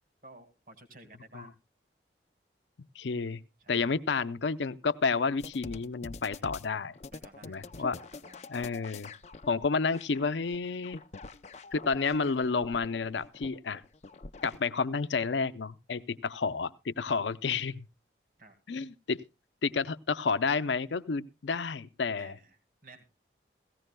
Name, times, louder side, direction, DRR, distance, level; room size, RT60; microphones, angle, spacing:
voice 1, 0.2-1.5 3.6-3.9 7.1-8.5 18.4-18.6 22.2-22.6 22.8-23.0, right 2 dB, 50° right, 5 dB, 1.9 m, -54 dB
voice 2, 3.0-3.4 3.7-6.9 7.4-8.0 8.5-9.1 9.5-11.0 11.7-13.8 14.4-17.9 18.7-19.2 19.6-22.4, left 4 dB, 85° left, 14 dB, 0.6 m, -30 dB
sound 1, 5.4-14.7, left 3 dB, 40° left, 0.5 m, -46 dB
17.0 x 15.5 x 2.2 m, 0.27 s
head